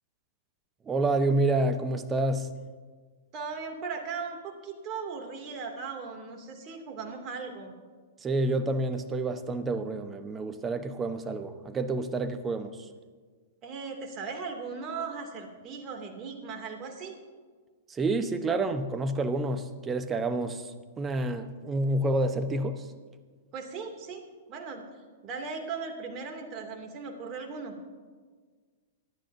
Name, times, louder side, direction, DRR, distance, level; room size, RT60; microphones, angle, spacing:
voice 1, 0.9-2.5 8.2-12.8 17.9-20.7 21.0-22.8, right 2 dB, 20° right, 9 dB, 1.0 m, -28 dB
voice 2, 3.3-7.7 13.6-17.1 23.5-24.2 24.5-24.8 25.2-27.7, right 5 dB, 35° right, 2 dB, 2.5 m, -38 dB
24.5 x 11.5 x 2.7 m, 1.5 s
hypercardioid pair, 110°, 0 cm